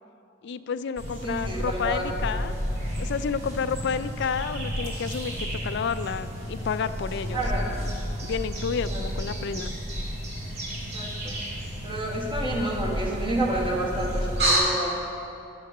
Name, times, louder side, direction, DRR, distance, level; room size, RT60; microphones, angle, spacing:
voice 1, 0.4-2.5 3.0-8.0 8.2-9.7, left 6 dB, 60° left, 13 dB, 0.4 m, -30 dB
sound 1, 1.0-14.6, equal, 60° right, 2.1 m, -31 dB
voice 2, 1.2-2.1 7.3-7.7 8.9-9.1 10.9-11.4 11.8-15.0, right 1 dB, 25° right, -2 dB, 1.6 m, -29 dB
11.0 x 6.6 x 6.5 m, 2.8 s
head